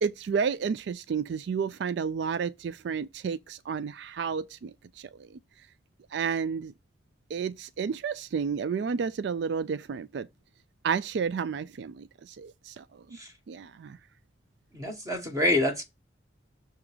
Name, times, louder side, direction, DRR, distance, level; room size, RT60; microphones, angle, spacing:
voice 1, 0.0-5.4 6.1-6.7 7.3-10.3 10.8-13.0 13.5-14.0, right 6 dB, 60° right, 0.3 m, -31 dB
voice 2, 14.7-15.8, left 1 dB, 20° right, 1.1 m, -27 dB
6.9 x 3.6 x 4.9 m
head